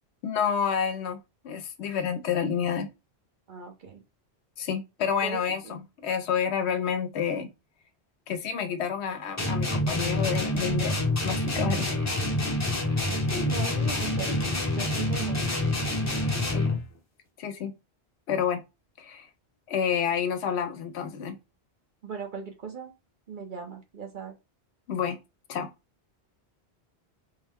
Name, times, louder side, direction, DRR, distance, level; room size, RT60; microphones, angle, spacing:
voice 1, 0.2-2.9 4.6-7.5 8.3-12.1 16.5-16.7 17.4-17.7 18.3-18.6 19.0-19.3 19.7-21.4 24.9-25.2 25.5-25.7, left 7 dB, 80° left, 0.8 m, -29 dB
voice 2, 3.5-4.0 5.2-5.4 5.6-5.8 13.3-14.4 14.7-15.7 22.0-22.9 23.3-24.3, right 5 dB, 50° right, 0.8 m, -38 dB
sound 1, 9.4-16.9, left 1 dB, 20° left, 0.7 m, -27 dB
3.6 x 2.1 x 3.4 m
omnidirectional pair, 1.1 m